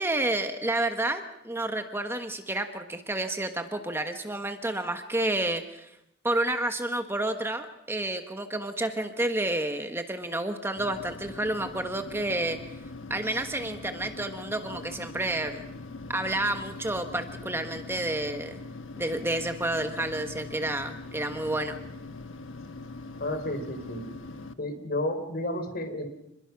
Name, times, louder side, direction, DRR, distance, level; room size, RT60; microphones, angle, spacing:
voice 1, 0.0-5.9 6.2-12.6 13.1-15.6 16.1-18.6 19.0-21.8, right 1 dB, 10° right, 7 dB, 1.2 m, -30 dB
sound 1, 10.8-24.5, left 3 dB, 75° left, 1.3 m, -42 dB
voice 2, 23.2-24.0 24.6-26.0, left 1 dB, 50° left, 7 dB, 4.0 m, -31 dB
27.5 x 21.0 x 6.0 m, 0.85 s
head